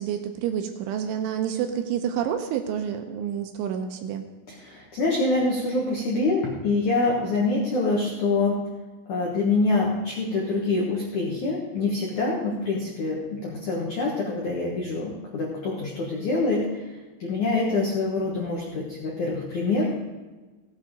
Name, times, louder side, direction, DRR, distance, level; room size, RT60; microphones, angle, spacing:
voice 1, 0.0-4.2, right 9 dB, 80° right, 6 dB, 3.0 m, -28 dB
voice 2, 4.5-8.6 9.1-16.8 17.2-19.9, left 3 dB, 75° left, -3 dB, 1.7 m, -25 dB
16.0 x 8.1 x 5.1 m, 1.2 s
omnidirectional pair, 5.9 m